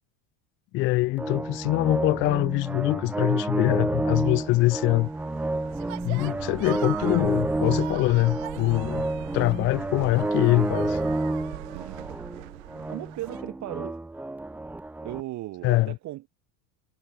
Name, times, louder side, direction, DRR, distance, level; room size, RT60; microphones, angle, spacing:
voice 1, 0.7-5.1 6.0-9.1 9.3-11.0 15.6-16.0, left 20 dB, 30° left, 0.4 m, -24 dB
sound 1, 1.2-15.2, right 2 dB, 5° right, 0.7 m, -30 dB
sound 2, 4.1-13.4, right 25 dB, 75° right, 2.0 m, -40 dB
voice 2, 12.9-14.0 15.0-16.3, right 16 dB, 45° right, 3.5 m, -37 dB
supercardioid pair, 150°, 40 cm